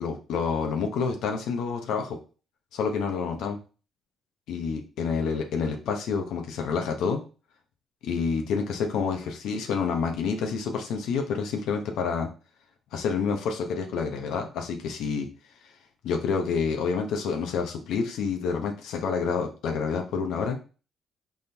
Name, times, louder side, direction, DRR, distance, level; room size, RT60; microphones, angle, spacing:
voice 1, 0.0-2.2 2.7-3.6 4.5-7.2 8.0-12.3 12.9-15.3 16.0-20.6, left 5 dB, 85° left, 4 dB, 0.8 m, -28 dB
4.3 x 3.6 x 3.4 m, 0.35 s
cardioid pair, 90°, 0 cm